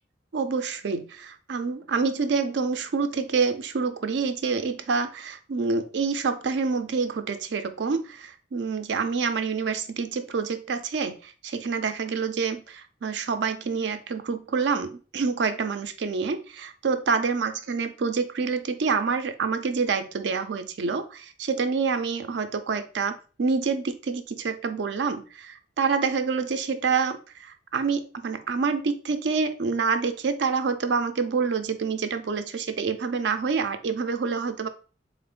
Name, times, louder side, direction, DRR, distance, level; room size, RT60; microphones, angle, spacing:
voice 1, 0.3-34.7, right 5 dB, 70° right, 9 dB, 0.5 m, -27 dB
3.8 x 2.5 x 3.6 m, 0.36 s
head